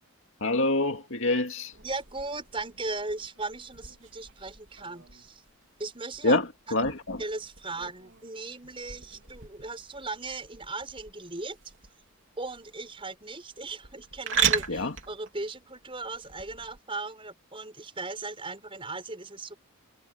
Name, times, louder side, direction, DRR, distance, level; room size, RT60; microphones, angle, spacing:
voice 1, 0.4-1.7 6.2-6.4 6.7-7.2 14.7-14.9, left 2 dB, 60° left, 2.4 m, -25 dB
sound 1, 1.7-16.8, right 7 dB, 55° right, 3.8 m, -37 dB
voice 2, 1.8-5.4 5.8-6.4 6.7-6.9 7.2-11.6 12.4-19.5, right 3 dB, 25° right, 5.8 m, -37 dB
head